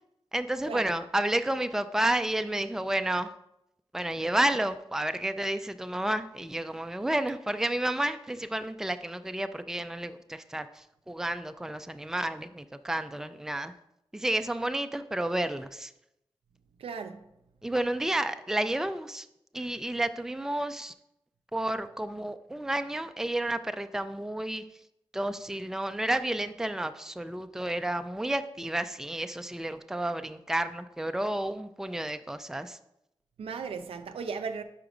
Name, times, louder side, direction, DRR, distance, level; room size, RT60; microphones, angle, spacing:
voice 1, 0.3-3.3 3.9-13.7 14.1-15.9 17.6-19.3 19.5-20.9 21.5-24.6 25.1-32.8, right 1 dB, 5° right, 0.4 m, -31 dB
voice 2, 16.8-17.2 33.4-34.6, right 5 dB, 85° right, 0.5 m, -36 dB
5.8 x 5.1 x 4.9 m
cardioid pair, 65°, 9 cm